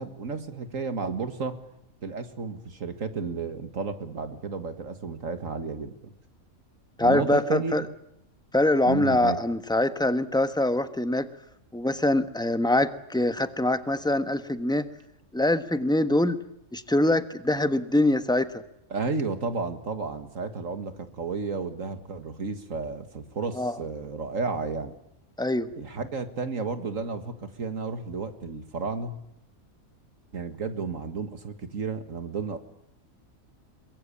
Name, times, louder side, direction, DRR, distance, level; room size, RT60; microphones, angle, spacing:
voice 1, 0.0-1.6 2.0-6.1 7.0-7.9 8.9-9.4 18.9-25.0 25.8-29.2 30.3-32.6, right 4 dB, 65° right, 8 dB, 2.0 m, -32 dB
voice 2, 7.0-7.8 8.5-11.3 11.7-14.9 15.3-16.4 16.7-18.5 23.6-23.7 25.4-25.7, left 1 dB, 5° left, 10 dB, 1.2 m, -24 dB
23.0 x 22.5 x 8.6 m, 0.80 s
omnidirectional pair, 1.5 m